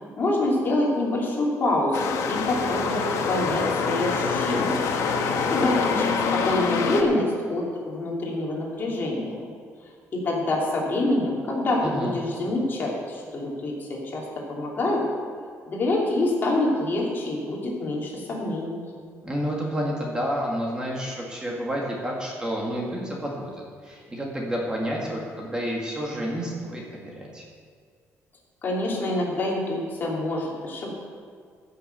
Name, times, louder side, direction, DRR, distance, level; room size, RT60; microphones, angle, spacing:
voice 1, 0.2-4.9 5.5-9.4 10.1-15.0 15.7-18.8 28.6-30.9, left 1 dB, 35° left, -3 dB, 2.9 m, -26 dB
sound 1, 1.9-7.0, left 5 dB, 70° left, 1.4 m, -25 dB
voice 2, 11.8-12.1 19.2-23.5 23.8-27.4, equal, 15° right, -2 dB, 2.0 m, -30 dB
15.0 x 6.8 x 6.8 m, 2.1 s
cardioid pair, 150°, 5 cm